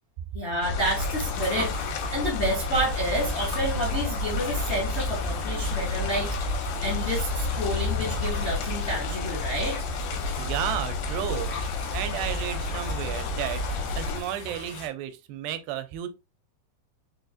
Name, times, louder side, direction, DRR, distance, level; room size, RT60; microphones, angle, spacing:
voice 1, 0.3-6.3 6.8-9.8, equal, 45° left, 0.9 m, -29 dB
sound 1, 0.6-14.2, left 2 dB, 90° left, 2.5 m, -30 dB
sound 2, 0.8-14.9, left 3 dB, 65° left, 1.3 m, -39 dB
voice 2, 10.4-13.7 14.0-16.1, right 11 dB, 85° right, 2.3 m, -33 dB
5.5 x 2.3 x 2.4 m
omnidirectional pair, 4.1 m